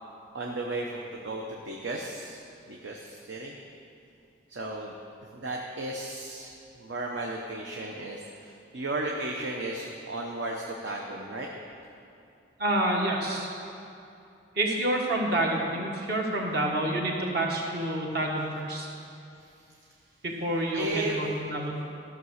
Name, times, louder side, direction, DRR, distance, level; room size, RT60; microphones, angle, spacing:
voice 1, 0.3-3.5 4.5-4.9 5.3-6.5 6.8-11.5 20.7-21.2, right 2 dB, 70° right, -1 dB, 0.9 m, -34 dB
voice 2, 12.6-13.5 14.5-18.9 20.2-21.8, right 1 dB, 50° right, -1 dB, 1.5 m, -28 dB
14.0 x 6.0 x 6.5 m, 2.6 s
head